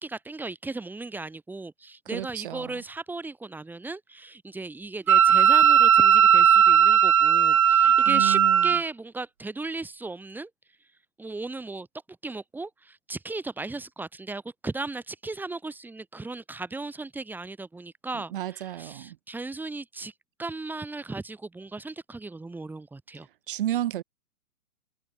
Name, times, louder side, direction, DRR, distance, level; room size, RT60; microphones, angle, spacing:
voice 1, 0.0-10.5 11.2-11.9 12.2-20.1 20.4-23.3, right 3 dB, 5° right, 3.2 m, -36 dB
voice 2, 2.1-2.8 8.0-8.8 18.3-19.2 23.5-24.0, right 13 dB, 40° right, 1.0 m, -32 dB
Wind instrument woodwind instrument, 5.1-8.8, right 8 dB, 80° right, 0.6 m, -17 dB
figure-of-eight pair, 120°, 42 cm